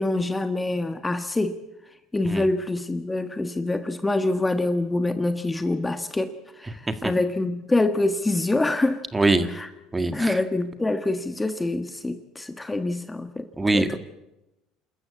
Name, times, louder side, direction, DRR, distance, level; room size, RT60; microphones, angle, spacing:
voice 1, 0.0-1.6 2.1-9.0 9.5-9.7 10.1-14.0, left 2 dB, 15° left, 8 dB, 1.4 m, -25 dB
voice 2, 9.1-9.5 9.9-10.4 13.6-14.0, right 2 dB, 15° right, 9 dB, 1.9 m, -22 dB
27.5 x 14.0 x 8.5 m, 0.98 s
supercardioid pair, 100°, 0 cm